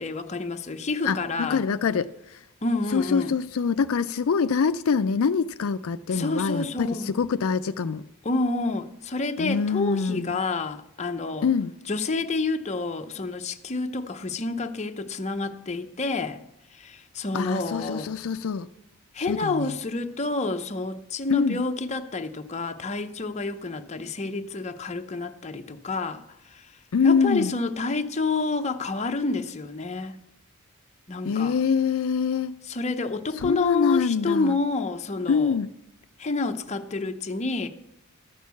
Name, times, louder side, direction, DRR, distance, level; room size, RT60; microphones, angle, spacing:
voice 1, 0.0-1.6 2.6-3.3 6.1-7.1 8.2-11.5 11.9-16.4 16.7-18.1 19.1-26.2 26.5-26.7 27.0-30.2 31.1-31.6 32.7-35.6 36.2-37.7, left 3 dB, 30° left, 0.7 m, -29 dB
voice 2, 1.0-2.4 2.9-8.0 9.4-10.3 11.4-11.7 17.3-18.7 19.3-19.7 21.3-21.6 26.9-27.6 31.2-32.6 33.4-34.6 35.3-35.7, left 5 dB, 70° left, 0.4 m, -25 dB
13.0 x 6.5 x 8.2 m
head